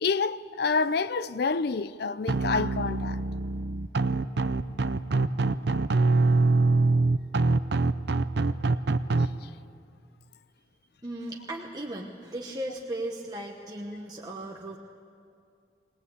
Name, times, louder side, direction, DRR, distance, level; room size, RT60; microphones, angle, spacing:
voice 1, 0.0-3.2, left 4 dB, 55° left, 0.5 m, -28 dB
sound 1, 2.3-9.3, right 3 dB, 55° right, 0.6 m, -24 dB
voice 2, 11.0-14.8, right 1 dB, 20° right, 1.1 m, -36 dB
22.0 x 19.0 x 8.4 m
head